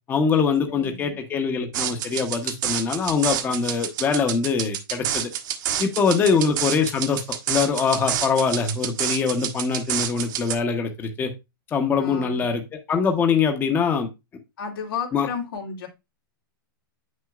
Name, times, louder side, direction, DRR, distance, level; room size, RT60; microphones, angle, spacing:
voice 1, 0.1-5.3 5.8-11.3 11.7-12.6 12.9-14.1 15.1-15.3, left 5 dB, 15° left, 5 dB, 1.0 m, -23 dB
voice 2, 0.7-1.2 6.3-6.4 12.0-12.4 14.6-15.9, left 6 dB, 75° left, 0 dB, 2.5 m, -33 dB
sound 1, 1.7-10.5, right 10 dB, 55° right, 1.3 m, -28 dB
8.1 x 6.3 x 2.4 m, 0.24 s
hypercardioid pair, 150°, 12 cm